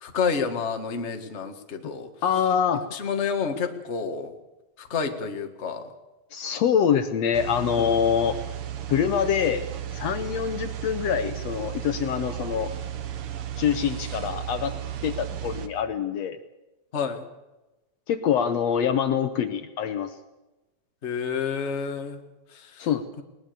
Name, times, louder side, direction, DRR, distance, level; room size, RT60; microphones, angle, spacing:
voice 1, 0.0-2.1 2.9-4.3 4.8-5.9 7.8-8.0 16.9-17.2 21.0-22.2 22.5-22.9, left 6 dB, 30° left, 5 dB, 1.7 m, -29 dB
voice 2, 2.2-2.9 6.3-8.4 8.9-9.7 9.9-12.7 13.6-14.8 15.0-16.4 18.1-20.1 22.8-23.0, left 8 dB, 70° left, 10 dB, 2.0 m, -25 dB
sound 1, 7.3-15.7, right 11 dB, 60° right, 1.9 m, -34 dB
21.0 x 19.5 x 6.9 m, 1.0 s
omnidirectional pair, 3.4 m